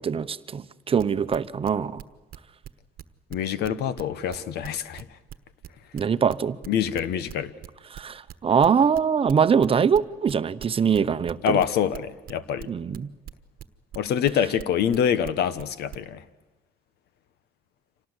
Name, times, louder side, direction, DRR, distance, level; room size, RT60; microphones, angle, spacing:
voice 1, 0.0-2.0 5.9-6.6 7.9-11.6 12.7-13.1, right 7 dB, 35° right, 13 dB, 0.9 m, -23 dB
sound 1, 1.0-2.7 3.0-7.0 7.3-11.0 11.3-16.0, right 11 dB, 60° right, 1.2 m, -41 dB
voice 2, 3.3-5.0 6.7-7.5 11.4-12.7 13.9-16.2, left 8 dB, 75° left, 15 dB, 1.3 m, -25 dB
26.5 x 18.5 x 8.2 m, 1.2 s
cardioid pair, 110°, 17 cm